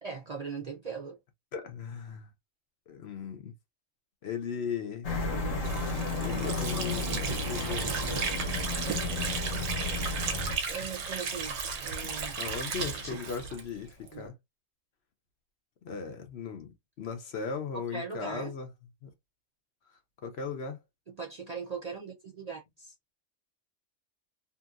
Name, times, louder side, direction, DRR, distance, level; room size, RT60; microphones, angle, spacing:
voice 1, 0.0-1.2 10.7-12.4 13.0-13.2 14.1-14.3 17.9-18.5 21.2-22.9, right 5 dB, 45° right, 0.6 m, -39 dB
voice 2, 1.5-2.3 2.9-3.5 4.2-5.1 6.2-8.0 12.0-12.1 12.4-14.3 15.8-18.7 19.0-19.1 20.2-20.8, left 6 dB, 60° left, 0.8 m, -37 dB
sound 1, 5.0-10.6, left 2 dB, 90° left, 1.4 m, -32 dB
Water / Sink (filling or washing), 5.6-14.2, right 5 dB, 65° right, 1.0 m, -35 dB
2.8 x 2.6 x 2.4 m
omnidirectional pair, 1.3 m